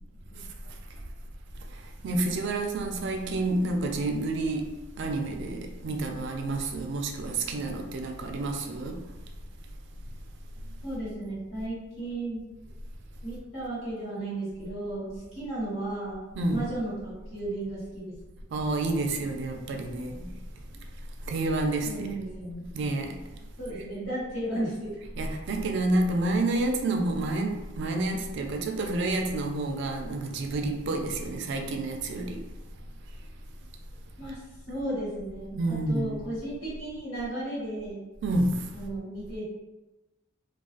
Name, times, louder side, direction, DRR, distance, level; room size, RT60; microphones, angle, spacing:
voice 1, 0.3-0.7 10.8-12.4 13.2-16.2 16.5-18.2 21.8-22.8 23.6-25.0 34.2-34.4 34.7-38.0 38.7-39.4, right 1 dB, 80° left, 1.3 m, -34 dB
voice 2, 2.0-9.0 16.4-16.6 18.5-20.3 21.3-22.1 22.8-23.2 25.2-32.4 35.6-36.3 38.2-38.6, right 2 dB, 60° right, 0.3 m, -29 dB
2.4 x 2.2 x 2.4 m
head